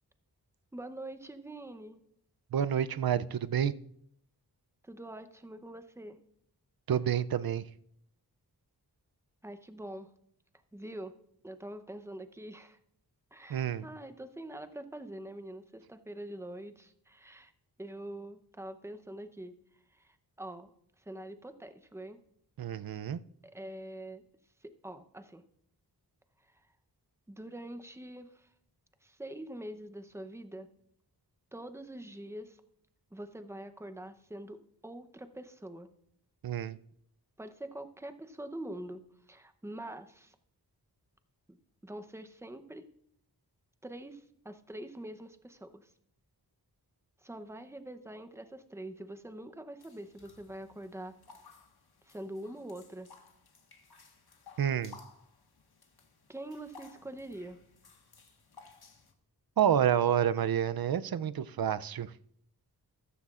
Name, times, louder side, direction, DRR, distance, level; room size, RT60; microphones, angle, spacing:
voice 1, 0.7-2.0 4.8-6.2 9.4-10.1 10.7-11.2 11.4-12.8 13.3-17.5 17.8-19.6 19.9-20.7 21.0-22.2 23.4-24.2 24.6-25.4 26.4-26.6 27.3-28.5 29.0-30.7 31.5-32.6 33.1-35.9 37.4-40.3 41.5-42.9 43.8-45.9 47.2-51.2 52.0-53.1 56.3-57.6, right 1 dB, 5° right, 9 dB, 0.7 m, -44 dB
voice 2, 2.5-3.7 6.9-7.6 13.5-13.8 22.6-23.2 36.4-36.8 54.6-55.0 59.6-62.1, right 9 dB, 65° right, 15 dB, 0.5 m, -29 dB
sound 1, 49.8-59.1, left 4 dB, 70° left, 1.4 m, -57 dB
14.0 x 13.5 x 2.4 m, 0.68 s
wide cardioid pair, 100°, 40 cm